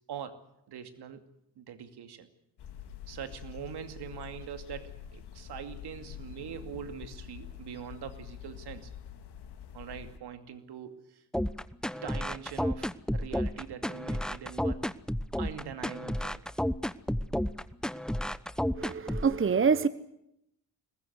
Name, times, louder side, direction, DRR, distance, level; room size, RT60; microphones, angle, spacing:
voice 1, 0.1-0.4 0.7-1.2 1.6-2.3 3.1-8.9 9.7-11.2 12.0-15.0 15.4-16.4, right 8 dB, 70° right, 8 dB, 2.5 m, -43 dB
sound 1, 2.6-10.2, left 9 dB, 70° left, 2.0 m, -46 dB
sound 2, 11.3-19.3, equal, ahead, 1.0 m, -31 dB
voice 2, 18.8-19.9, right 5 dB, 30° right, 15 dB, 1.1 m, -26 dB
22.5 x 20.0 x 8.2 m, 0.81 s
hypercardioid pair, 45°, 42 cm